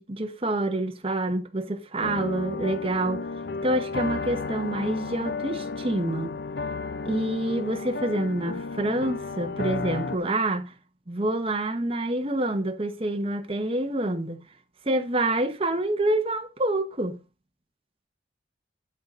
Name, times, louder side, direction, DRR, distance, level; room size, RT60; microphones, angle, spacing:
voice 1, 0.0-3.3 3.6-6.3 7.0-10.7 11.1-14.4 14.8-17.2, right 1 dB, 30° right, 1.1 m, -27 dB
sound 1, 2.0-10.2, left 4 dB, 60° left, 0.6 m, -33 dB
11.5 x 4.0 x 5.5 m
head